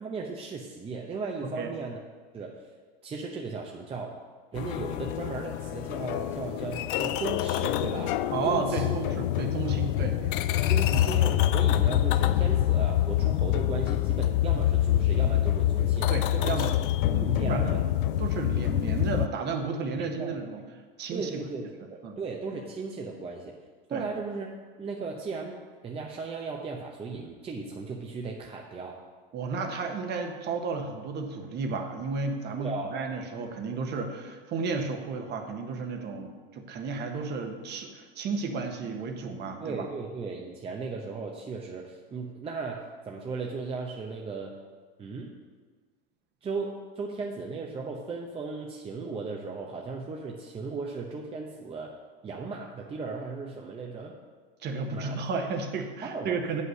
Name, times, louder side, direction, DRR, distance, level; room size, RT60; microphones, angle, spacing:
voice 1, 0.0-2.0 2.3-2.6 3.0-4.2 4.5-8.2 8.4-8.9 10.2-10.3 10.7-16.6 17.2-17.9 20.2-20.4 21.1-23.6 23.9-24.5 24.8-29.0 32.6-32.9 39.6-44.5 45.0-45.3 46.4-52.0 52.2-54.2 54.9-55.2 56.0-56.4, right 4 dB, 20° right, 0 dB, 0.8 m, -36 dB
sound 1, 4.5-19.3, left 13 dB, 65° left, 0.5 m, -26 dB
voice 2, 8.3-10.2 10.9-11.1 16.1-16.7 17.1-17.8 18.2-20.6 21.0-21.4 22.0-22.2 23.9-24.0 29.3-39.8 54.6-56.6, right 4 dB, 35° right, 4 dB, 1.2 m, -33 dB
7.7 x 5.6 x 6.4 m, 1.5 s
hypercardioid pair, 115°, 29 cm